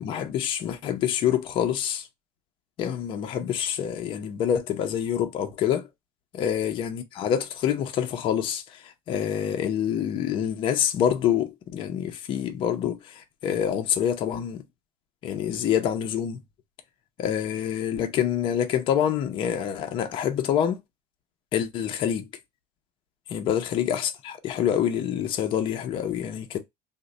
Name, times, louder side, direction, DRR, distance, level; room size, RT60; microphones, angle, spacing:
voice 1, 0.0-2.0 2.8-5.9 6.3-8.6 9.1-14.6 15.2-16.4 17.2-20.8 21.5-22.3 23.3-26.6, left 9 dB, 30° left, 0.5 m, -26 dB
3.1 x 2.1 x 3.6 m
cardioid pair, 175°, 17 cm